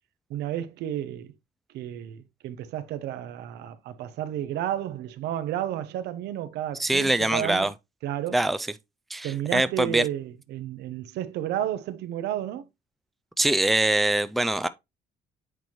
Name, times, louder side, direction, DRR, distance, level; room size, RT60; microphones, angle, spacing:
voice 1, 0.3-1.3 1.7-7.7 8.0-8.4 9.2-12.7, right 11 dB, 80° right, 0.8 m, -32 dB
voice 2, 6.8-7.7 8.3-8.6 9.1-10.0 13.4-14.7, right 2 dB, ahead, 0.3 m, -23 dB
8.1 x 4.5 x 2.9 m
cardioid pair, 110°, 17 cm